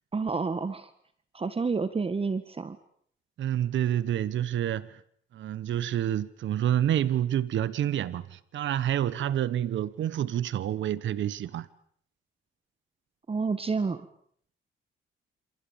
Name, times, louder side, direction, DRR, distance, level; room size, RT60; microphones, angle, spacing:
voice 1, 0.1-0.9 1.3-2.8 13.3-14.1, right 4 dB, 30° right, 1.7 m, -29 dB
voice 2, 3.4-5.0 5.3-11.7, right 11 dB, 70° right, 1.4 m, -28 dB
28.0 x 27.5 x 7.3 m
cardioid pair, 90°, 20 cm